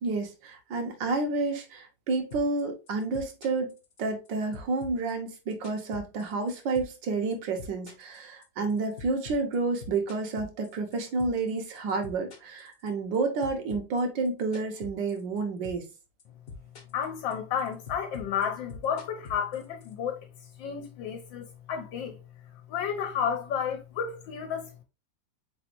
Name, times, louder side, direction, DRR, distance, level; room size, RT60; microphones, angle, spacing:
voice 1, 0.0-3.7 4.0-15.8, right 3 dB, 75° right, 1.7 m, -30 dB
sound 1, 2.3-2.6 2.9-4.3 4.5-6.5 6.8-7.1 7.3-11.5 11.8-13.2 13.4-15.4 15.6-17.1 17.3-19.9, left 4 dB, 55° left, 1.3 m, -44 dB
voice 2, 16.9-20.2 20.6-22.2 22.7-24.8, left 7 dB, 80° left, 1.4 m, -32 dB
4.2 x 4.0 x 2.9 m
omnidirectional pair, 2.0 m